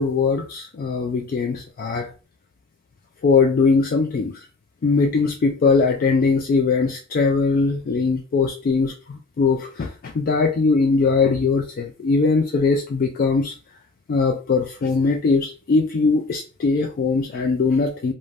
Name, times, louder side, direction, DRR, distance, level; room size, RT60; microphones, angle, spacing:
voice 1, 0.0-2.1 3.2-4.3 4.8-13.5 14.1-18.1, left 4 dB, 45° left, 3 dB, 0.3 m, -20 dB
2.5 x 2.1 x 3.1 m, 0.34 s
head